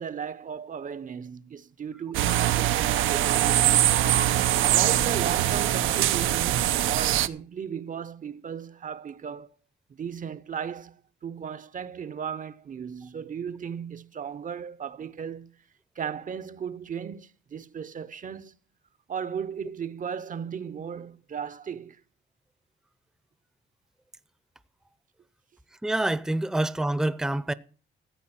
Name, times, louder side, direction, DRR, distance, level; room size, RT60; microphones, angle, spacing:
voice 1, 0.0-3.9 4.6-9.5 10.0-11.0 11.2-15.5 16.0-18.6 19.1-22.0, right 7 dB, 40° right, 0.7 m, -36 dB
sound 1, 2.1-7.3, right 13 dB, 90° right, 0.7 m, -23 dB
voice 2, 25.8-27.5, right 1 dB, 5° right, 0.7 m, -26 dB
14.5 x 8.4 x 5.7 m
cardioid pair, 90°, 20 cm